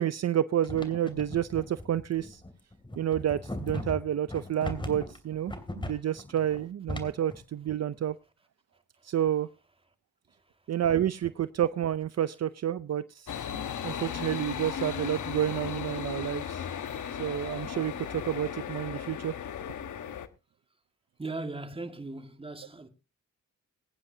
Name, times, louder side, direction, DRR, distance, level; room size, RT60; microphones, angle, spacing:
voice 1, 0.0-2.4 3.0-8.2 9.0-9.5 10.7-16.7 17.2-19.4, right 10 dB, 55° right, 0.6 m, -30 dB
sound 1, 0.6-7.4, left 1 dB, 15° left, 2.8 m, -38 dB
sound 2, 13.3-20.3, left 8 dB, 75° left, 1.2 m, -36 dB
voice 2, 21.2-22.9, right 2 dB, 20° right, 1.9 m, -38 dB
22.0 x 9.7 x 2.8 m
cardioid pair, 100°, 30 cm